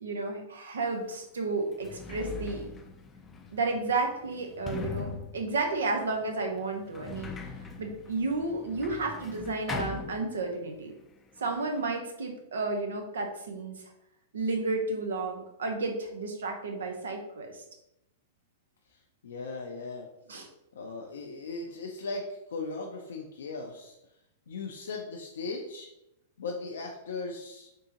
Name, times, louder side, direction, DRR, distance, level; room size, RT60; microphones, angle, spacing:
voice 1, 0.0-2.7 3.5-7.3 7.8-10.9 11.4-13.8 14.3-17.6 20.3-20.5, right 3 dB, 85° right, 4 dB, 0.6 m, -32 dB
Sliding door, 0.9-1.0 1.6-10.8 11.0-11.9, left 5 dB, 20° left, 0.4 m, -41 dB
voice 2, 18.8-20.1 20.7-24.0 24.5-25.9 26.4-27.7, left 3 dB, 85° left, 0 dB, 0.4 m, -38 dB
3.6 x 2.7 x 2.8 m, 0.86 s
hypercardioid pair, 125°, 0 cm